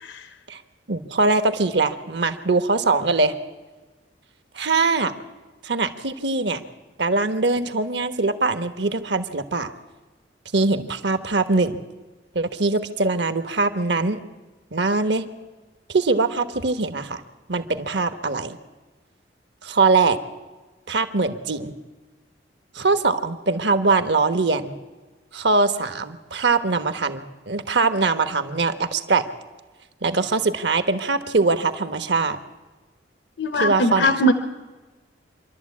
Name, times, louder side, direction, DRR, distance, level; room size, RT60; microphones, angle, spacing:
voice 1, 0.9-3.3 4.5-5.1 5.6-6.6 7.0-9.7 10.5-11.8 12.3-14.2 14.7-15.2 15.9-17.2 17.5-18.6 19.6-20.2 20.9-21.7 22.7-24.7 25.3-29.3 30.0-32.4 33.6-34.1, right 3 dB, 65° right, 10 dB, 1.2 m, -22 dB
voice 2, 33.4-34.3, equal, 75° left, 9 dB, 1.0 m, -20 dB
26.5 x 12.0 x 8.5 m, 1.2 s
head